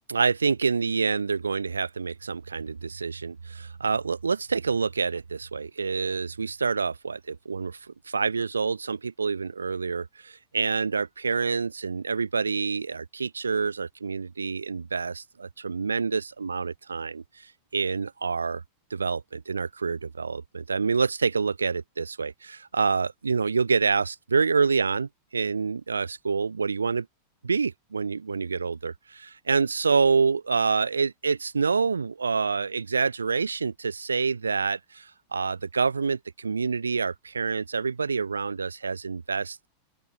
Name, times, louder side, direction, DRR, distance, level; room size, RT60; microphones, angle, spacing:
voice 1, 0.1-7.8 8.1-17.2 17.7-18.6 18.9-27.1 27.4-39.7, right 5 dB, 75° right, 0.7 m, -27 dB
open air
figure-of-eight pair, 90°, 0 cm